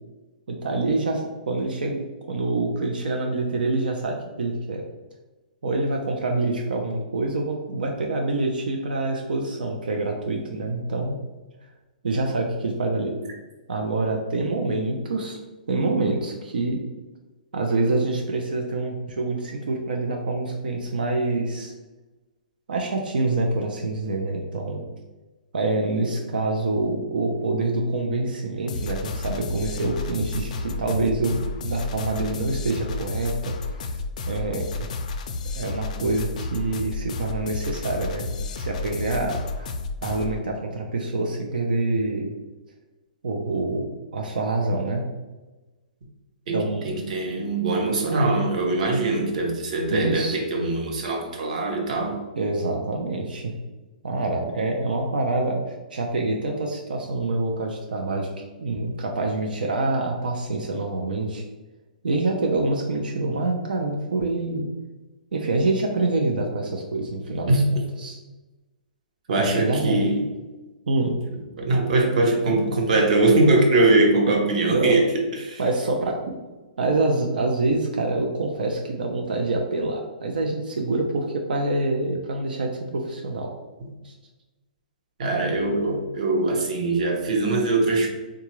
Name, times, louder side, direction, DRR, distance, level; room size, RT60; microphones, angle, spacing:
voice 1, 0.5-4.8 5.6-11.2 12.0-13.1 13.7-15.4 15.7-16.8 17.5-21.7 22.7-24.8 25.5-34.0 34.3-34.7 35.6-38.3 38.5-39.7 40.0-42.3 43.2-45.0 46.5-46.9 49.9-50.4 52.4-53.5 54.0-61.4 62.0-64.6 65.3-67.6 68.0-68.2 69.4-70.0 70.9-71.1 74.3-74.4 74.7-75.0 75.6-76.4 76.8-83.5 84.0-84.1, right 2 dB, 85° right, 1 dB, 0.5 m, -26 dB
sound 1, 28.7-40.4, left 3 dB, 55° left, 0.4 m, -32 dB
voice 2, 46.5-52.2 67.5-67.6 69.3-70.3 71.6-75.6 83.8-83.9 85.2-88.1, right 2 dB, 55° right, 1 dB, 0.8 m, -22 dB
3.8 x 2.3 x 3.0 m, 1.2 s
hypercardioid pair, 160°, 5 cm